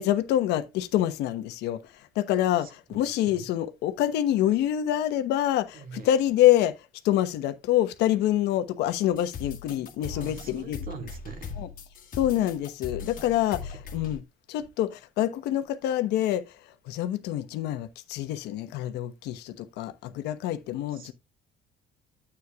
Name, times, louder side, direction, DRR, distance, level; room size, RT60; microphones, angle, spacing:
voice 1, 0.0-1.8 2.1-6.8 7.0-10.8 11.6-11.7 12.1-14.2 14.5-16.5 16.9-21.1, left 12 dB, 85° left, 1.1 m, -26 dB
voice 2, 2.6-3.5 5.7-6.1 10.0-11.6 20.9-21.1, right 5 dB, 55° right, 2.2 m, -44 dB
sound 1, 9.1-14.2, left 5 dB, 55° left, 1.7 m, -39 dB
9.8 x 8.4 x 2.4 m
cardioid pair, 110°, 17 cm